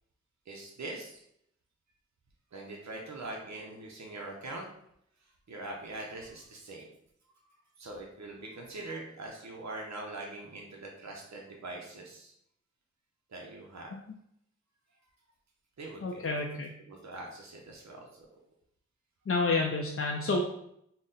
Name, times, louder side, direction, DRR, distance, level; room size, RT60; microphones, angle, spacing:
voice 1, 0.5-1.2 2.5-4.7 5.5-6.9 7.5-12.3 13.3-13.9 15.8-16.3 16.9-18.3, right 2 dB, 70° right, -1 dB, 0.6 m, -43 dB
voice 2, 16.0-16.7 19.3-20.5, left 3 dB, 50° left, 0 dB, 0.4 m, -29 dB
3.9 x 2.1 x 3.7 m, 0.74 s
wide cardioid pair, 45°, 29 cm